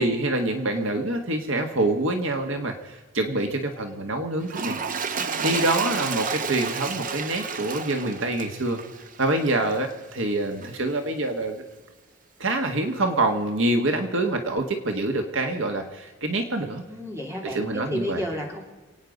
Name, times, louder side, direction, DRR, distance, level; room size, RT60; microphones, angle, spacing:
voice 1, 0.0-4.8 5.2-8.8 9.2-11.6 12.4-16.8 17.4-18.2, right 2 dB, 65° right, 5 dB, 1.6 m, -26 dB
Toilet flush, 4.4-9.9 10.6-10.7, right 5 dB, 40° right, 0.8 m, -31 dB
voice 2, 5.1-5.5 16.9-18.6, equal, 15° right, 0 dB, 3.0 m, -33 dB
28.0 x 9.5 x 5.3 m, 1.2 s
head